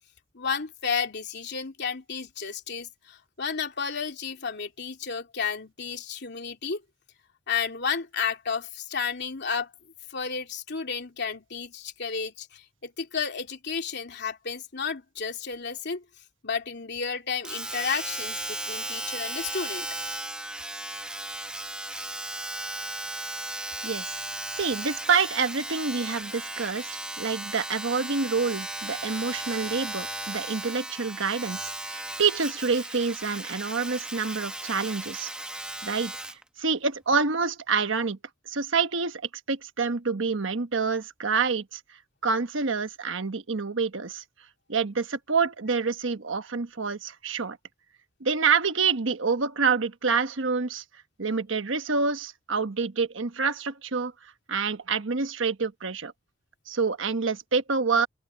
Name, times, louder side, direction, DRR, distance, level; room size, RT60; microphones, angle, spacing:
voice 1, 0.3-6.8 7.5-9.7 10.1-16.0 16.4-19.9, left 6 dB, 60° left, 2.9 m, -32 dB
Domestic sounds home sounds, 17.4-36.4 37.1-37.2, right 1 dB, 5° right, 0.8 m, -36 dB
voice 2, 23.8-24.2 24.5-35.3 35.8-36.1 36.6-38.2 38.5-39.2 39.5-41.8 42.2-44.2 44.7-47.6 48.2-50.8 51.2-54.1 54.5-56.1 56.7-58.1, right 5 dB, 70° right, 1.2 m, -27 dB
open air
head